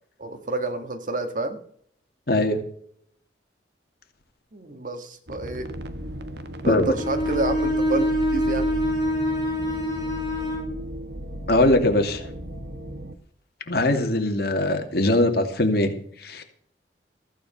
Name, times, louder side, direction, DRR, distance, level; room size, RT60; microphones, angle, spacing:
voice 1, 0.2-1.6 4.5-5.7 6.6-8.7, right 2 dB, 45° right, 8 dB, 1.7 m, -29 dB
voice 2, 2.3-2.6 6.6-6.9 11.5-12.3 13.7-15.9 16.2-16.4, left 1 dB, 60° left, 5 dB, 2.4 m, -21 dB
sound 1, 5.3-13.2, equal, 65° right, 1.4 m, -35 dB
Bowed string instrument, 6.9-10.7, equal, 25° right, 5.1 m, -25 dB
15.0 x 9.0 x 5.5 m, 0.63 s
head